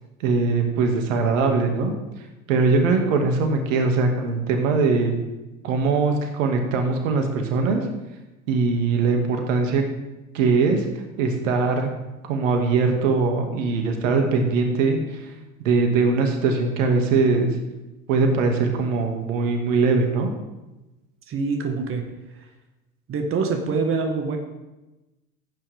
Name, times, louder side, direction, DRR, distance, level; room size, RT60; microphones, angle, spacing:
voice 1, 0.2-1.9 2.5-5.1 5.6-7.8 8.5-9.8 10.3-10.9 11.2-11.9 12.3-15.3 15.6-17.5 18.1-20.3, right 4 dB, 65° right, 3 dB, 2.3 m, -21 dB
voice 2, 21.3-22.0 22.4-22.5 23.1-24.4, right 4 dB, 30° right, 4 dB, 1.7 m, -25 dB
16.0 x 9.0 x 3.6 m, 1.0 s
hypercardioid pair, 80°, 41 cm